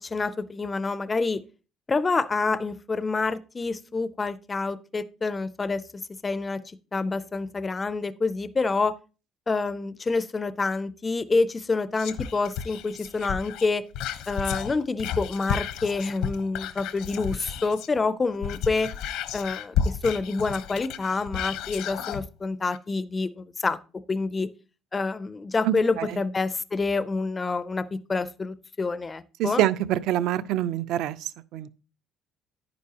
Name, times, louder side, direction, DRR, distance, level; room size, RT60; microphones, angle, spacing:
voice 1, 0.0-1.4 1.9-6.6 6.9-8.9 9.5-13.8 14.3-18.9 19.3-23.8 24.1-24.5 24.9-29.6, left 3 dB, 15° left, 0.4 m, -27 dB
Whispering, 12.0-18.0 18.3-22.2 22.7-22.8, left 8 dB, 80° left, 0.9 m, -32 dB
voice 2, 25.6-26.2 29.4-31.7, right 12 dB, 70° right, 0.5 m, -26 dB
10.5 x 9.4 x 2.9 m
cardioid pair, 175°, 0 cm